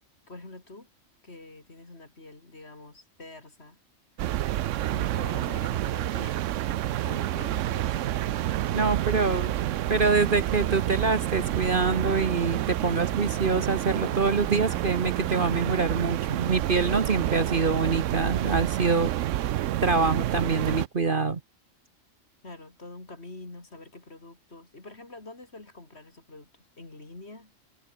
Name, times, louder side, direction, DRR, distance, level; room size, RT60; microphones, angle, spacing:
voice 1, 0.3-0.9 1.2-3.8 4.9-6.4 7.0-8.5 9.2-10.4 10.8-11.1 22.4-27.5, left 2 dB, 50° left, 4.0 m, -46 dB
sound 1, 4.2-20.9, right 13 dB, 70° right, 0.9 m, -29 dB
voice 2, 8.7-9.5 9.9-19.1 19.8-21.4, right 4 dB, 40° right, 1.3 m, -25 dB
sound 2, 10.1-15.9, right 1 dB, 5° right, 1.4 m, -44 dB
omnidirectional pair, 1.4 m